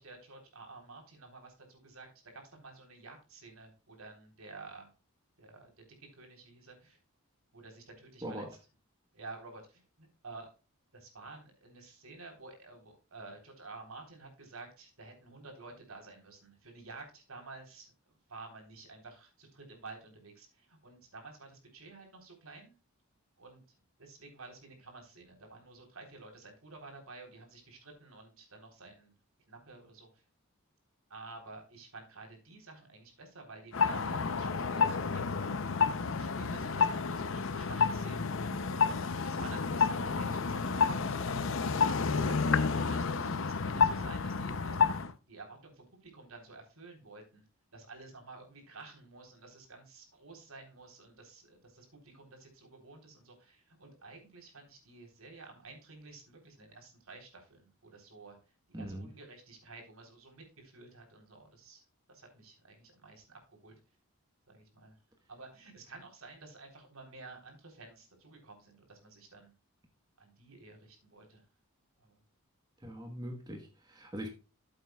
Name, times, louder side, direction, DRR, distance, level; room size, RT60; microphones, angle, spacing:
voice 1, 0.0-2.1 2.3-4.9 5.4-7.0 7.5-8.5 9.1-10.5 10.9-22.7 23.4-23.6 24.0-29.1 29.5-30.2 31.1-35.8 36.1-38.3 38.7-41.6 42.1-58.4 58.7-63.8 64.5-65.0 65.3-69.5 70.2-71.4 72.0-72.2, right 3 dB, 75° right, 3.7 m, -51 dB
voice 2, 8.2-8.5 58.7-59.1 72.8-74.3, right 1 dB, 20° right, 1.3 m, -41 dB
sound 1, 33.7-45.1, left 5 dB, 60° left, 0.6 m, -30 dB
13.5 x 7.8 x 2.3 m
head